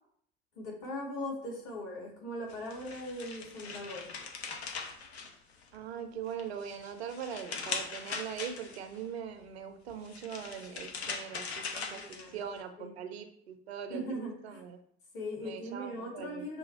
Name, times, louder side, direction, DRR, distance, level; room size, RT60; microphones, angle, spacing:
voice 1, 0.6-4.1 11.9-12.4 12.8-13.0 13.9-14.6 15.1-16.6, left 1 dB, 55° left, -2 dB, 1.8 m, -39 dB
sound 1, 2.5-5.9 6.3-9.0 9.9-12.6, left 5 dB, 80° left, 0.5 m, -41 dB
voice 2, 5.7-12.0 12.3-14.0 14.4-14.8 15.4-16.5, right 8 dB, 80° right, 9 dB, 0.5 m, -41 dB
6.2 x 2.3 x 3.1 m, 0.66 s
figure-of-eight pair, 50°, 31 cm